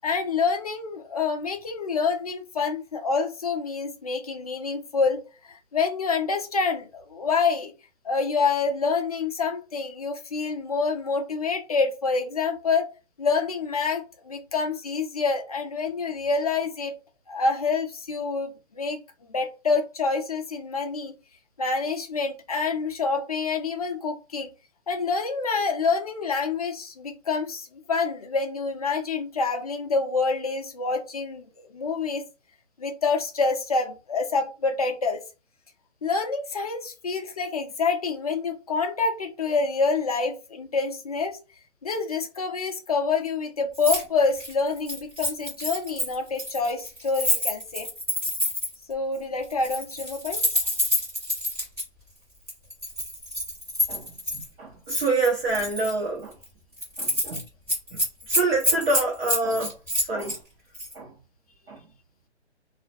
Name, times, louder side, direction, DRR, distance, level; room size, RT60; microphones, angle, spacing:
voice 1, 0.0-7.7 8.0-12.9 13.2-16.9 17.3-19.0 19.3-21.2 21.6-24.5 24.9-32.2 32.8-35.2 36.0-41.4 41.8-47.9 48.9-50.4, left 4 dB, 35° left, 0.4 m, -27 dB
Keys jangling, 43.7-44.0 44.3-48.8 49.5-51.8 52.5-54.5 54.9-55.9 56.3-56.5 56.8-57.4 57.7-60.4 60.7-60.9, left 1 dB, 10° right, 0.9 m, -27 dB
voice 2, 53.9-56.3 57.0-57.4 57.9-60.4 60.9-61.1 61.7-61.8, right 2 dB, 55° right, 0.9 m, -27 dB
2.3 x 2.1 x 2.6 m
hypercardioid pair, 150°, 35 cm